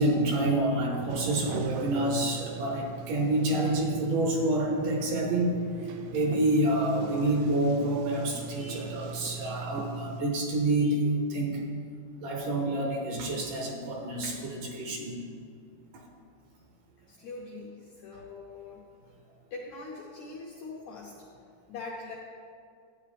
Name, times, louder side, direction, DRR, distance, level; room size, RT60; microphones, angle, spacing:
voice 1, 0.0-5.6 6.1-11.6 12.2-15.2, right 1 dB, 70° right, 1 dB, 2.2 m, -28 dB
Sliding door, 1.1-10.2, right 6 dB, 90° right, 1.8 m, -41 dB
voice 2, 17.1-18.8 19.5-21.2 21.7-22.2, left 3 dB, 75° left, -3 dB, 1.7 m, -42 dB
12.5 x 9.1 x 3.4 m, 2.3 s
omnidirectional pair, 4.3 m